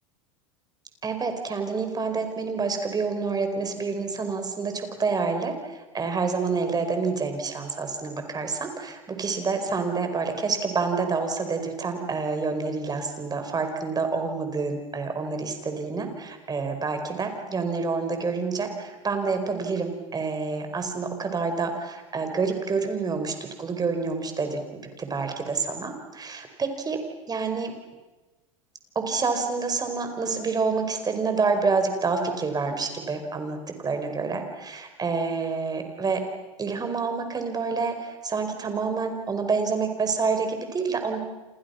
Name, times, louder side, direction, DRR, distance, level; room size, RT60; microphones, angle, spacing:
voice 1, 1.0-5.5 5.9-27.0 27.3-27.7 29.0-33.6 33.8-36.2 36.6-41.2, right 4 dB, 20° right, 6 dB, 5.7 m, -28 dB
29.0 x 28.0 x 6.1 m, 1.1 s
hypercardioid pair, 95°, 18 cm